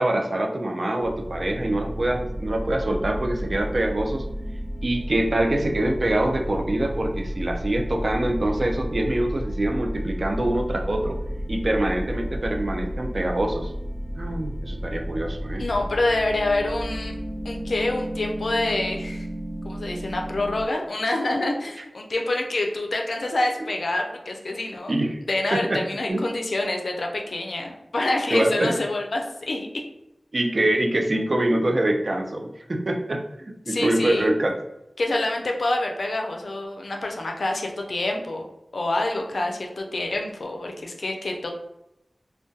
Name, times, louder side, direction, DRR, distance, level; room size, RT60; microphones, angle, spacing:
voice 1, 0.0-4.3 4.8-11.2 11.5-13.7 14.2-15.6 21.8-21.9 23.6-23.7 24.9-25.2 25.5-25.8 26.1-26.2 28.3-28.7 30.3-34.6, right 1 dB, 60° right, 3 dB, 0.4 m, -25 dB
sound 1, 1.0-20.6, equal, 25° left, 0.9 m, -32 dB
voice 2, 15.6-17.2 17.4-19.3 19.6-24.9 25.3-29.7 33.6-34.3 35.0-38.5 38.7-41.5, left 2 dB, 80° left, 2 dB, 0.4 m, -26 dB
2.2 x 2.1 x 2.6 m, 0.86 s
cardioid pair, 40°, 0 cm